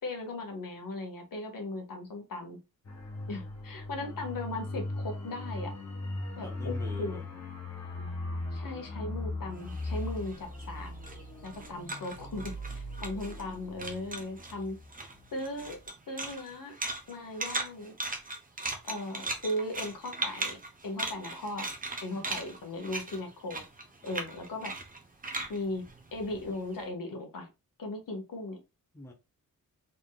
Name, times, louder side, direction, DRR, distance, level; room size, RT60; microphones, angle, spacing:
voice 1, 0.0-2.6 3.3-5.7 6.4-7.3 8.5-10.9 11.4-14.8 15.3-15.8 16.1-16.7 17.1-17.9 18.9-20.6 20.8-21.7 22.0-23.6 24.0-24.7 25.5-25.8 26.1-27.5 27.8-28.6, left 2 dB, 70° left, 1.5 m, -37 dB
sound 1, 2.8-15.2 15.5-15.7, left 2 dB, 50° left, 1.4 m, -39 dB
voice 2, 6.4-7.2 11.1-11.2 13.1-13.4 24.0-24.3 28.9-29.1, left 2 dB, 10° left, 0.8 m, -46 dB
sound 2, 9.6-13.5 13.8-14.6 14.9-26.7, right 2 dB, 25° right, 0.8 m, -38 dB
4.1 x 3.7 x 2.2 m
wide cardioid pair, 175°, 35 cm